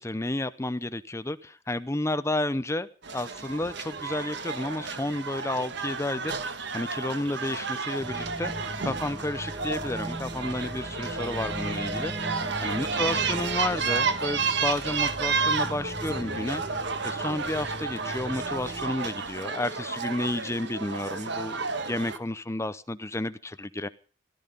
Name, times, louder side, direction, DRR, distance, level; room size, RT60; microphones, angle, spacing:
voice 1, 0.0-6.3 6.7-8.5 8.8-16.6 17.0-23.9, left 1 dB, 15° left, 14 dB, 0.7 m, -31 dB
sound 1, 3.0-22.2, right 5 dB, 60° right, 1.4 m, -31 dB
sound 2, 8.0-18.9, equal, 20° right, 1.7 m, -39 dB
17.5 x 12.5 x 5.4 m, 0.39 s
head